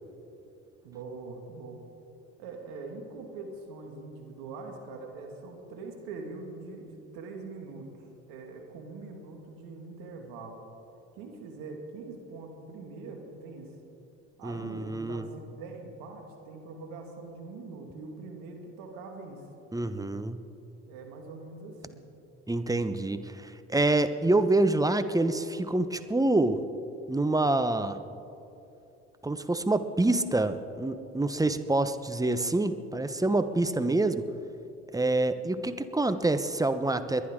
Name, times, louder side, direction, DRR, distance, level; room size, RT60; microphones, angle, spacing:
voice 1, 0.8-1.8 2.4-10.6 11.1-13.8 14.4-19.5 20.9-22.1, right 3 dB, 75° right, 2 dB, 2.3 m, -43 dB
voice 2, 14.4-15.2 19.7-20.4 22.5-26.6 27.1-28.0 29.2-34.3 34.9-37.3, right 2 dB, 10° right, 10 dB, 0.9 m, -26 dB
29.5 x 10.5 x 3.8 m, 2.9 s
hypercardioid pair, 60°, 35 cm